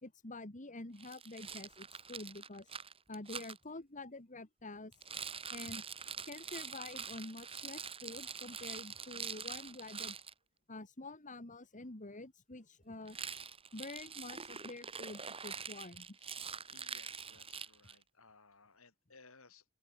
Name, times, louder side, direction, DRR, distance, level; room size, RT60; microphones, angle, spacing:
voice 1, 0.0-2.7 3.1-5.1 5.5-5.8 6.3-10.2 10.7-13.2 13.7-16.2, left 2 dB, 35° left, 2.2 m, -48 dB
Rattle, 1.0-3.6 4.9-10.3 13.1-18.0, right 6 dB, 25° right, 4.6 m, -45 dB
voice 2, 16.2-19.7, left 4 dB, 65° left, 6.9 m, -62 dB
open air
head